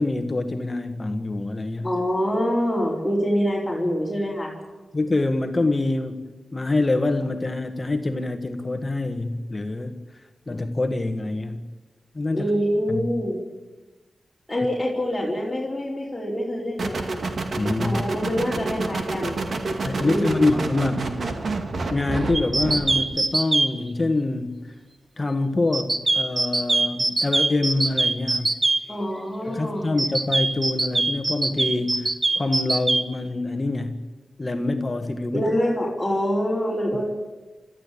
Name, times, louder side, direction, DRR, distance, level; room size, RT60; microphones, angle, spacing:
voice 1, 0.0-1.9 4.9-6.2 6.5-10.0 10.5-11.7 12.1-12.5 12.9-13.1 17.6-18.3 19.8-21.4 21.9-24.7 25.2-28.6 29.4-32.1 32.3-34.0 34.4-35.4, left 2 dB, 25° left, 6 dB, 1.6 m, -25 dB
voice 2, 1.8-4.5 12.3-13.4 14.5-17.1 17.8-19.4 20.0-20.4 28.9-29.9 35.3-37.1, equal, 10° left, -6 dB, 4.7 m, -25 dB
sound 1, 16.8-23.1, right 3 dB, 60° right, 2.3 m, -28 dB
sound 2, 22.3-23.7 25.7-28.8 30.0-33.0, right 2 dB, 30° right, 1.4 m, -22 dB
30.0 x 14.0 x 8.6 m, 1.2 s
wide cardioid pair, 105°, 0 cm